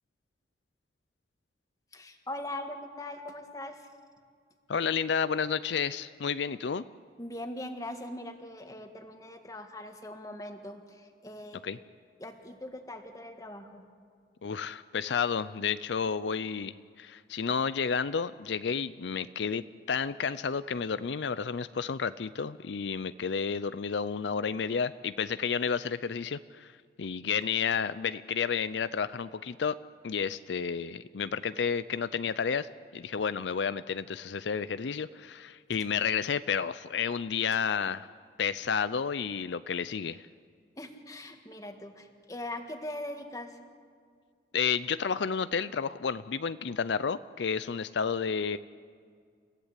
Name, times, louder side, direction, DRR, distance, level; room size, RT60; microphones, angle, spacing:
voice 1, 1.9-3.9 7.2-11.6 12.2-13.9 40.8-43.6, left 1 dB, 20° left, 5 dB, 1.8 m, -41 dB
voice 2, 4.7-6.8 11.6-11.8 14.4-26.7 27.0-29.8 30.0-38.1 38.4-40.2 44.5-48.6, left 6 dB, 80° left, 14 dB, 0.5 m, -31 dB
30.0 x 15.5 x 8.3 m, 2.1 s
head